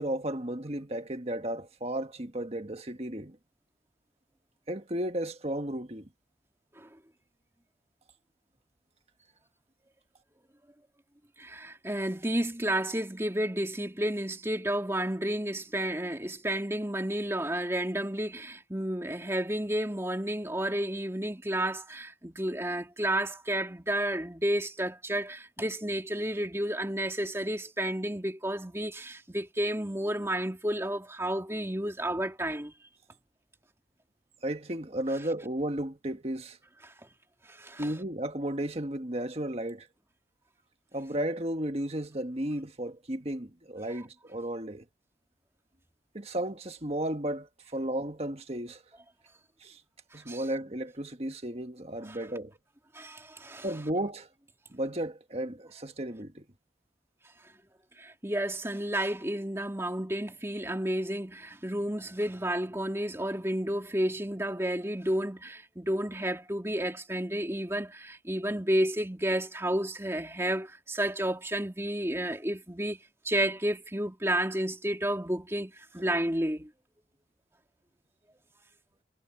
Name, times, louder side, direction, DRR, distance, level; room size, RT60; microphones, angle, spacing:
voice 1, 0.0-3.4 4.7-6.1 34.4-36.6 37.8-39.9 40.9-44.9 46.1-48.8 49.6-49.8 50.1-52.5 53.6-54.3 54.7-56.5, right 1 dB, 30° right, 1.6 m, -34 dB
voice 2, 11.4-32.7 36.8-36.9 37.5-37.9 50.1-50.4 52.1-52.2 52.9-53.7 58.0-73.0 73.2-76.7, right 1 dB, 15° right, 2.8 m, -31 dB
head